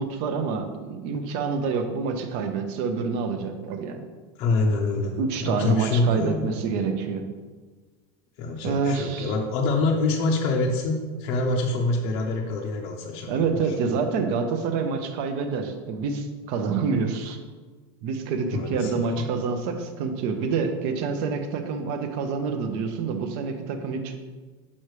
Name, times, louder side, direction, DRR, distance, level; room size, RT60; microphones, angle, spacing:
voice 1, 0.0-4.0 5.2-7.2 8.6-9.3 13.3-17.4 18.0-24.1, right 5 dB, 45° right, 6 dB, 0.7 m, -27 dB
voice 2, 4.4-5.2 5.4-6.5 8.4-13.5 18.5-19.3, left 3 dB, 40° left, 0 dB, 0.6 m, -25 dB
6.4 x 5.6 x 3.2 m, 1.4 s
supercardioid pair, 165°, 14 cm